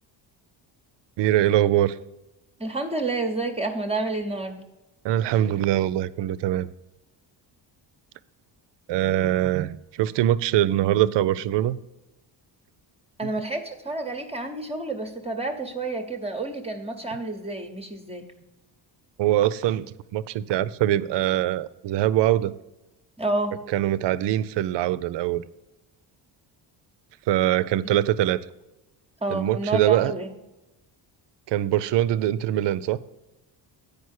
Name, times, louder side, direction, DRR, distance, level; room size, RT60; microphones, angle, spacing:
voice 1, 1.2-2.0 5.0-6.7 8.9-11.8 19.2-22.5 23.7-25.4 27.3-28.4 29.3-30.1 31.5-33.0, right 13 dB, 70° right, 0.5 m, -23 dB
voice 2, 2.6-4.6 13.2-18.3 23.2-23.6 27.8-28.0 29.2-30.3, right 2 dB, 15° right, 0.8 m, -29 dB
9.3 x 5.1 x 6.4 m
cardioid pair, 130°, 45 cm